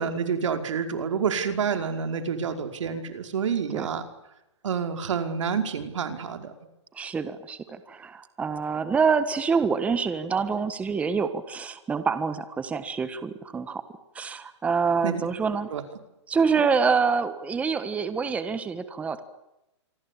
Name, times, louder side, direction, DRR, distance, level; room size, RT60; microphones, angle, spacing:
voice 1, 0.0-4.0 4.6-6.5 15.0-15.2 15.7-15.8, right 6 dB, 85° right, 6 dB, 5.2 m, -28 dB
voice 2, 6.9-13.8 14.1-15.7 16.3-19.2, right 5 dB, 10° right, 11 dB, 1.5 m, -26 dB
27.0 x 24.0 x 8.9 m, 0.89 s
hypercardioid pair, 160°, 15 cm